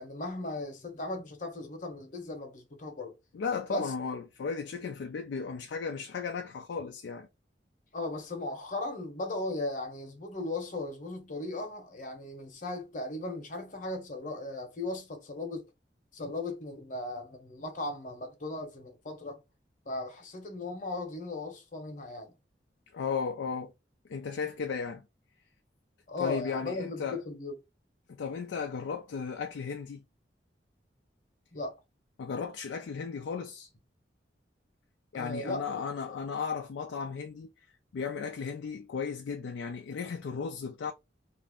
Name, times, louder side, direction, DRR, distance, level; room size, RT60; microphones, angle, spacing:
voice 1, 0.0-3.1 3.7-3.9 7.9-15.7 16.1-19.4 19.9-22.3 26.1-27.5 31.5-31.8 35.1-35.8 36.1-36.2, left 2 dB, 45° left, 0.9 m, -37 dB
voice 2, 3.3-7.3 22.9-23.7 24.1-25.0 26.2-27.2 28.1-30.0 32.2-33.7 35.1-37.5 37.9-40.9, left 5 dB, 85° left, 0.4 m, -35 dB
2.5 x 2.0 x 3.4 m
head